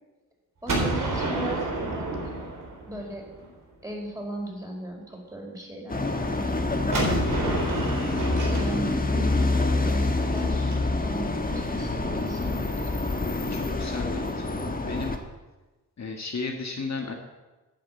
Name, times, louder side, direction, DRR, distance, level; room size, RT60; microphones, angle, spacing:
voice 1, 0.6-2.4 2.9-3.3 3.8-7.2 8.4-13.0, right 1 dB, 10° right, -1 dB, 4.9 m, -37 dB
Gunshot gunfire, 0.7-3.5 6.9-10.7, right 2 dB, 70° right, 4.0 m, -30 dB
sound 1, 5.9-15.2, left 2 dB, 25° left, 1.5 m, -27 dB
voice 2, 13.5-14.5 14.8-15.1 16.0-17.1, left 4 dB, 55° left, 2 dB, 1.7 m, -33 dB
10.5 x 8.9 x 8.4 m, 1.2 s
cardioid pair, 80°, 33 cm